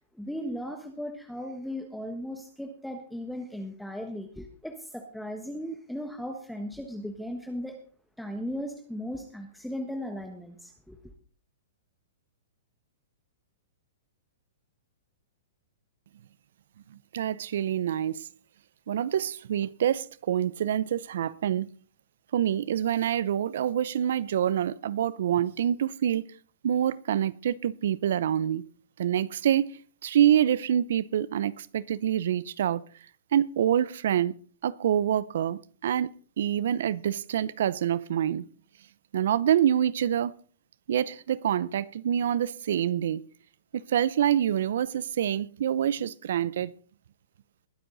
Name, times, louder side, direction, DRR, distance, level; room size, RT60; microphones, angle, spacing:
voice 1, 0.0-7.8 8.2-11.0, equal, ahead, 1.4 m, -37 dB
voice 2, 17.1-18.3 18.9-21.7 22.3-26.2 26.6-28.6 29.0-32.8 33.3-34.3 34.6-36.1 36.4-38.5 39.1-40.3 40.9-43.2 43.7-46.7, right 10 dB, 70° right, 0.6 m, -26 dB
21.5 x 7.8 x 4.0 m
hypercardioid pair, 135°, 0 cm